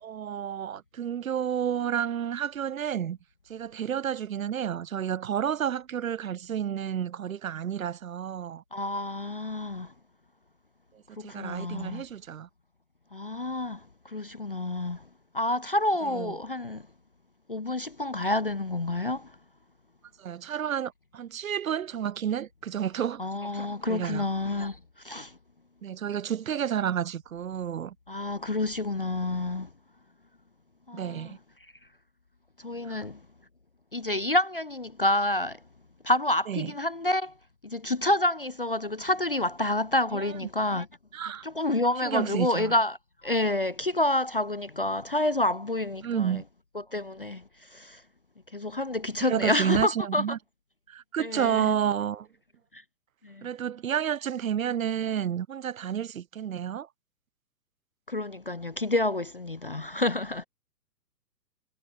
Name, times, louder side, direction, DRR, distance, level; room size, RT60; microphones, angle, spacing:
voice 1, 0.0-3.2 3.5-8.6 11.2-12.5 16.1-16.3 20.2-23.3 23.5-24.2 25.8-27.9 30.9-31.4 32.9-33.0 36.5-36.7 40.1-40.4 41.1-41.5 42.0-42.7 46.0-46.4 49.2-50.4 50.9-52.3 53.4-56.9, right 9 dB, 55° right, 0.9 m, -30 dB
voice 2, 8.7-9.9 11.2-12.0 13.1-15.0 15.3-16.9 17.5-19.4 23.2-25.4 28.1-29.7 30.9-31.4 32.6-33.2 33.9-35.6 36.0-37.3 37.6-40.9 41.4-46.4 46.7-48.0 48.5-50.2 51.2-51.7 52.7-52.8 53.2-53.5 58.1-60.5, left 1 dB, 35° left, 0.5 m, -29 dB
hypercardioid pair, 170°, 50 cm